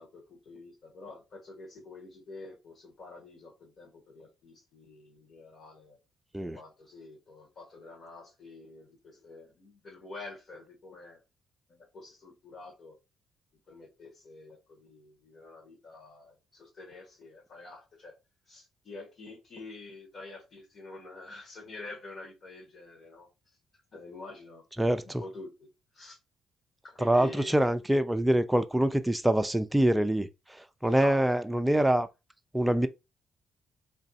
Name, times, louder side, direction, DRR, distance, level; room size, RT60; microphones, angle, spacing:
voice 1, 0.0-6.0 6.5-11.2 11.7-13.0 13.7-18.1 18.5-23.3 23.9-24.6 25.0-25.7 25.9-26.2 26.8-27.7 30.8-31.4, left 3 dB, 55° left, 1.8 m, -47 dB
voice 2, 24.8-25.2 27.0-30.3 30.8-32.1 32.5-32.9, right 1 dB, 10° right, 0.4 m, -25 dB
3.3 x 2.6 x 4.1 m
cardioid pair, 90°, 0 cm